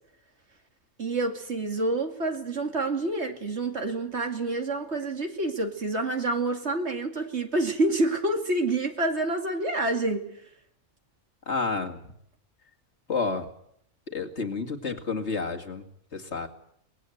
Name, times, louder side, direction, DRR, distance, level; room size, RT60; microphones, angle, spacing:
voice 1, 1.0-10.3, right 2 dB, 55° right, 4 dB, 2.6 m, -28 dB
voice 2, 11.5-12.1 13.1-13.5 14.1-15.9 16.1-16.5, left 4 dB, 55° left, 3 dB, 2.5 m, -30 dB
24.0 x 20.5 x 7.9 m, 0.70 s
omnidirectional pair, 1.4 m